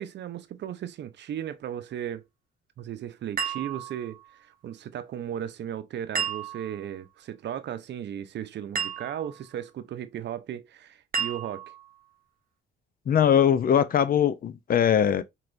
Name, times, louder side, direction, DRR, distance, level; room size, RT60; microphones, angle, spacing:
voice 1, 0.0-2.2 2.8-11.7, right 10 dB, 60° right, 0.7 m, -36 dB
sound 1, 3.4-4.3 6.2-6.9 8.8-9.4 11.1-11.9, right 7 dB, 45° right, 1.0 m, -32 dB
voice 2, 13.1-15.2, left 9 dB, 50° left, 0.5 m, -21 dB
4.6 x 3.0 x 2.6 m
cardioid pair, 90°, 20 cm